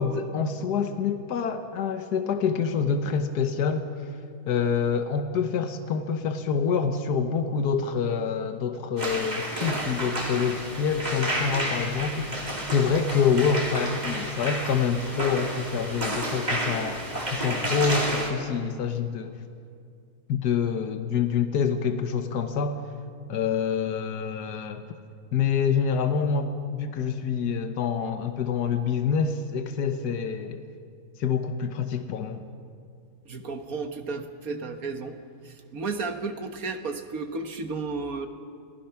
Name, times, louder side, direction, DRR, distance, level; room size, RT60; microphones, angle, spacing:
voice 1, 0.0-3.9 4.5-19.4 20.3-22.9 23.3-24.8 25.3-30.6 31.2-32.4, left 6 dB, 80° left, 7 dB, 1.6 m, -26 dB
sound 1, 9.0-18.3, right 1 dB, 25° right, 3.0 m, -31 dB
voice 2, 33.3-35.2 35.4-38.3, right 4 dB, 60° right, 6 dB, 1.8 m, -33 dB
29.0 x 19.0 x 5.9 m, 2.3 s
omnidirectional pair, 1.7 m